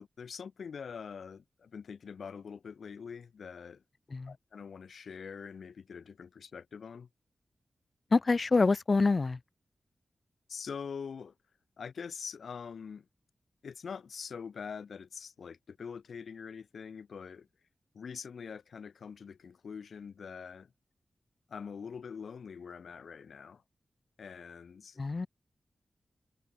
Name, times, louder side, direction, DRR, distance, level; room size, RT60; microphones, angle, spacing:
voice 1, 0.0-3.8 4.3-7.1 10.5-11.3 11.8-13.0 13.6-17.5 17.9-20.7 21.5-23.6 24.2-25.0, left 6 dB, 80° left, 5.1 m, -44 dB
voice 2, 8.1-9.4 25.0-25.3, left 3 dB, 35° left, 0.8 m, -26 dB
wide cardioid pair, 150°, 0 cm